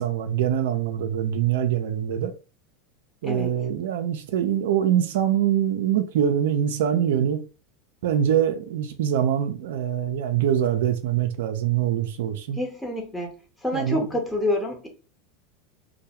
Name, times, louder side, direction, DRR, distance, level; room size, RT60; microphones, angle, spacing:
voice 1, 0.0-2.3 3.2-7.4 8.0-12.6 13.7-14.1, right 9 dB, 75° right, 0.3 m, -24 dB
voice 2, 3.2-3.6 12.5-13.3 13.6-14.9, left 1 dB, 10° left, 0.8 m, -27 dB
2.2 x 2.1 x 2.8 m
hypercardioid pair, 90°, 0 cm